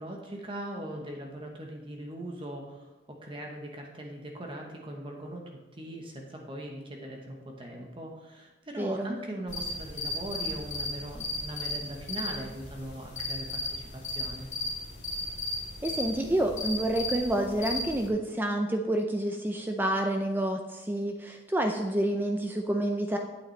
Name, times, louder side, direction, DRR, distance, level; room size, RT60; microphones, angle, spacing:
voice 1, 0.0-14.5, right 1 dB, 30° right, 1 dB, 1.1 m, -40 dB
voice 2, 8.8-9.2 15.8-23.2, right 1 dB, 10° right, 3 dB, 0.4 m, -28 dB
sound 1, 9.5-18.1, left 1 dB, 40° left, 2.5 m, -35 dB
8.9 x 8.3 x 3.3 m, 1.1 s
head